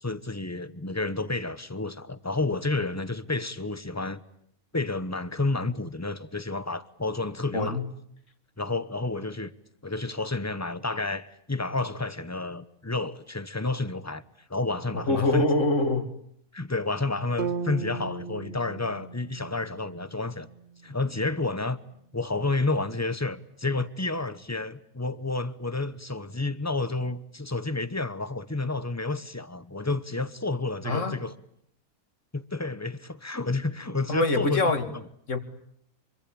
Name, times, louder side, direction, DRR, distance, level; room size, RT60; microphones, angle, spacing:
voice 1, 0.0-4.2 4.7-7.8 8.6-9.5 9.8-14.2 14.5-15.4 16.5-20.5 20.8-21.8 22.1-31.3 32.3-34.6 34.9-35.0, left 3 dB, 15° left, 0.9 m, -30 dB
voice 2, 7.5-7.9 14.9-16.1 30.8-31.1 34.1-34.9 35.3-35.4, left 2 dB, 55° left, 2.5 m, -24 dB
sound 1, 17.4-21.5, right 5 dB, 45° right, 1.7 m, -37 dB
26.0 x 24.5 x 8.7 m
omnidirectional pair, 1.5 m